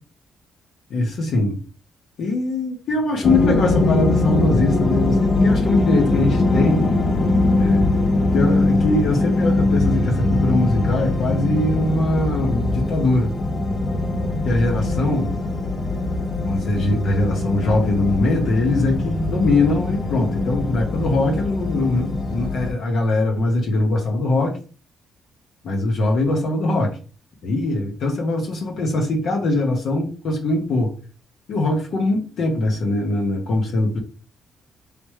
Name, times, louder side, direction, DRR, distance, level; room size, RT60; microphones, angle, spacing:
voice 1, 0.9-1.6 2.2-6.9 7.6-7.9 8.3-13.3 14.4-15.4 16.4-24.6 25.6-26.9 27.4-30.9 31.5-34.0, left 2 dB, 65° left, 0 dB, 0.9 m, -22 dB
sound 1, 3.2-22.7, left 2 dB, 35° left, 0.6 m, -21 dB
3.4 x 3.0 x 3.1 m, 0.36 s
cardioid pair, 90°, 0 cm